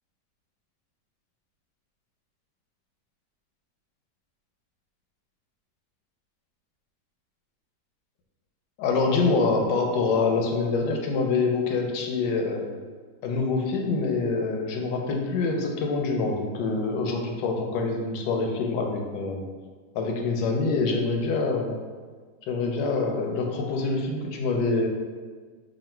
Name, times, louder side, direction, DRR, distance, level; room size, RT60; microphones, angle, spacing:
voice 1, 8.8-12.7 13.2-19.4 19.9-21.8 22.4-24.9, left 3 dB, 85° left, 1 dB, 1.2 m, -25 dB
3.0 x 2.5 x 4.3 m, 1.5 s
omnidirectional pair, 1.8 m